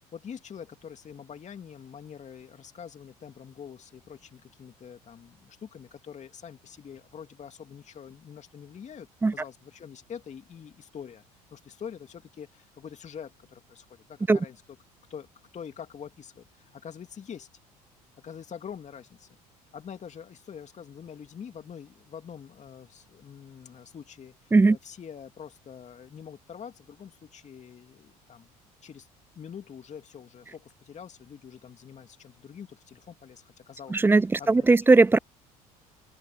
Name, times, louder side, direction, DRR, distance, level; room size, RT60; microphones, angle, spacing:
voice 1, 0.1-11.2 11.5-14.6 15.1-15.3 15.5-17.5 18.2-19.3 19.7-28.5 28.8-29.1 29.3-34.0 34.4-34.9, left 7 dB, 40° left, 2.7 m, -45 dB
voice 2, 33.9-35.2, right 3 dB, 10° right, 0.4 m, -18 dB
open air
hypercardioid pair, 65°, 19 cm